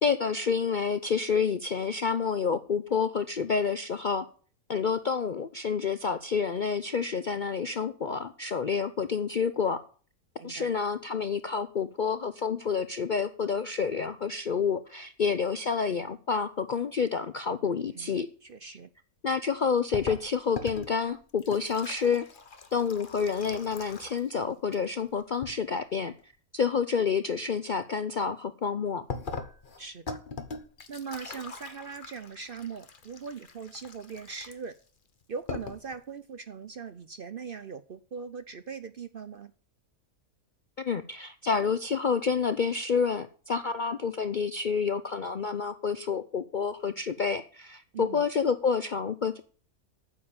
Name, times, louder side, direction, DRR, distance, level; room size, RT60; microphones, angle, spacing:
voice 1, 0.0-4.3 4.7-9.8 10.4-18.3 19.2-22.2 22.7-29.0 40.8-49.4, left 6 dB, 55° left, 0.5 m, -29 dB
voice 2, 10.4-10.7 17.9-18.1 18.4-18.9 29.8-30.2 30.9-34.8 35.3-39.5 47.9-48.2, right 6 dB, 50° right, 0.7 m, -40 dB
sound 1, 19.9-24.4 24.6-25.6 29.1-34.8 35.2-35.3 35.5-36.0, left 4 dB, 40° left, 1.2 m, -41 dB
9.5 x 7.3 x 8.6 m
omnidirectional pair, 1.5 m